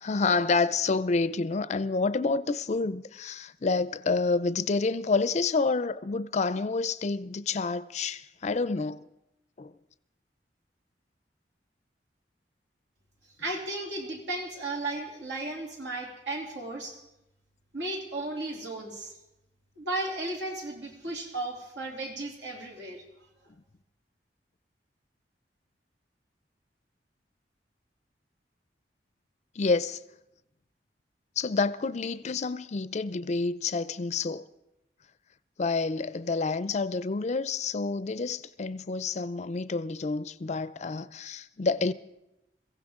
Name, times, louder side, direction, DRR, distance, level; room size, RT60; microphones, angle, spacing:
voice 1, 0.0-9.0 9.6-9.7 29.6-30.0 31.4-34.4 35.6-41.9, left 4 dB, 40° left, 0.5 m, -28 dB
voice 2, 13.4-16.9 17.7-19.1 19.8-23.0, right 2 dB, 80° right, 3.0 m, -35 dB
22.5 x 15.5 x 3.7 m
head